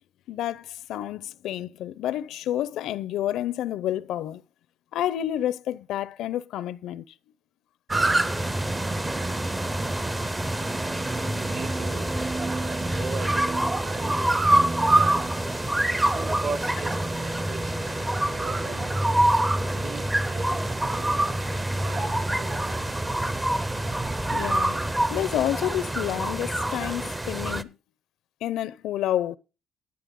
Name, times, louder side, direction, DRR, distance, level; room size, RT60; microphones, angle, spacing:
voice 1, 0.3-4.4 4.9-7.0 24.3-27.7 28.4-29.4, left 12 dB, 90° left, 0.6 m, -29 dB
sound 1, 7.9-27.6, right 1 dB, 10° right, 0.5 m, -26 dB
voice 2, 11.0-12.2 12.5-15.3 16.0-19.3 19.7-21.3 21.7-23.0, right 5 dB, 45° right, 0.9 m, -39 dB
12.5 x 9.8 x 3.7 m
cardioid pair, 155°, 0 cm